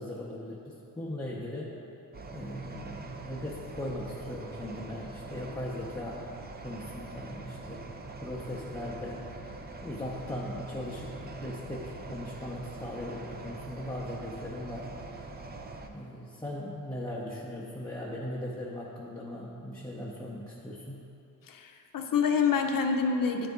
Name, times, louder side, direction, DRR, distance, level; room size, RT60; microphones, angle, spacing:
voice 1, 0.0-1.7 2.3-6.3 6.6-7.8 8.2-9.4 9.8-15.2 15.8-21.0, left 1 dB, 10° left, -5 dB, 0.7 m, -39 dB
sound 1, 2.1-15.9, right 3 dB, 30° right, 0.5 m, -44 dB
voice 2, 21.5-23.5, left 5 dB, 70° left, 5 dB, 0.6 m, -27 dB
9.1 x 3.9 x 3.5 m, 2.8 s
cardioid pair, 75°, 35 cm